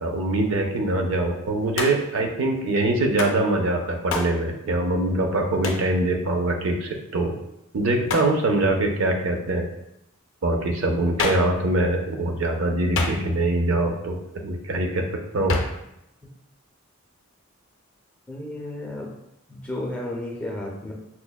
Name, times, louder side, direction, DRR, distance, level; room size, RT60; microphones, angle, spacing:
voice 1, 0.0-7.3 7.7-9.7 10.4-14.2 14.4-15.0 15.3-15.6, right 2 dB, 65° right, 2 dB, 0.5 m, -23 dB
Hands, 1.8-2.2 3.2-3.4 4.1-4.4 5.6-5.9 8.1-8.4 11.2-11.6 12.9-13.5 15.5-15.8, left 3 dB, 60° left, 0.5 m, -27 dB
voice 2, 18.3-19.1 19.5-20.9, left 1 dB, 5° left, -3 dB, 0.4 m, -32 dB
5.7 x 2.1 x 2.2 m, 0.83 s
head